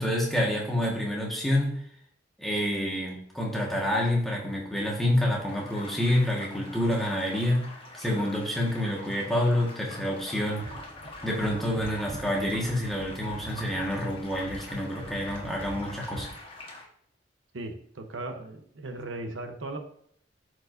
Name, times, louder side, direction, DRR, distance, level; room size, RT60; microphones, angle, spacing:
voice 1, 0.0-1.8 2.4-7.6 8.0-10.7 11.2-16.3, left 1 dB, ahead, -3 dB, 1.5 m, -28 dB
sound 1, 5.5-16.8, left 2 dB, 30° left, 1.3 m, -45 dB
sound 2, 10.6-16.4, right 2 dB, 30° right, 0.7 m, -45 dB
voice 2, 17.5-19.8, right 2 dB, 80° right, 5 dB, 0.9 m, -37 dB
12.5 x 4.6 x 2.6 m, 0.65 s
head